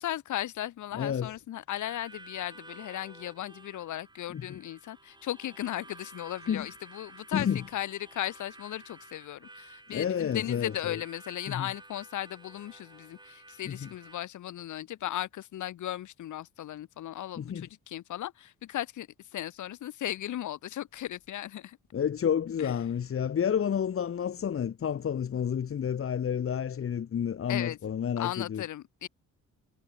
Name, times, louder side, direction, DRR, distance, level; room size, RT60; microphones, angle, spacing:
voice 1, 0.0-21.8 22.6-22.7 27.5-27.8 28.2-29.1, left 12 dB, 75° left, 4.2 m, -36 dB
voice 2, 0.9-1.3 4.3-4.6 6.5-6.7 7.3-7.6 9.9-11.0 11.5-11.7 13.6-13.9 17.4-17.7 21.9-28.6, left 8 dB, 45° left, 1.5 m, -30 dB
Harmonica, 1.7-14.2, right 2 dB, 15° right, 5.1 m, -52 dB
cardioid pair, 90°, 30 cm